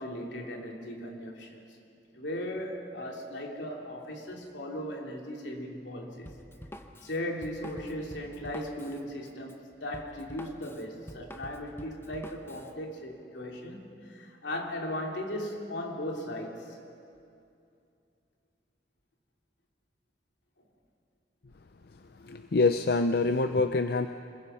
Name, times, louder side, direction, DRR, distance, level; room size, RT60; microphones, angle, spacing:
voice 1, 0.0-1.6 2.1-6.3 7.0-16.8, left 1 dB, 85° left, 0 dB, 3.0 m, -37 dB
Drum kit, 6.3-12.7, left 1 dB, 15° left, 1.0 m, -47 dB
voice 2, 22.2-24.1, left 3 dB, 60° left, 9 dB, 0.6 m, -25 dB
26.0 x 21.0 x 5.6 m, 2.6 s
head